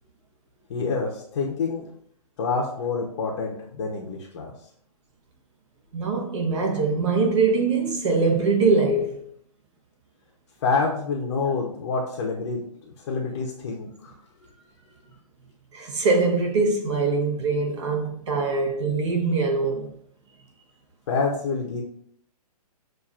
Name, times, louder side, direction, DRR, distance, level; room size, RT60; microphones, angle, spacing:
voice 1, 0.7-1.9 2.4-4.5 10.6-12.6 12.8-14.1 21.1-21.8, left 4 dB, 40° left, 0.7 m, -27 dB
voice 2, 5.9-9.3 11.4-11.5 15.7-19.9, right 4 dB, 50° right, 1.1 m, -23 dB
7.2 x 2.5 x 2.4 m
hypercardioid pair, 155°, 20 cm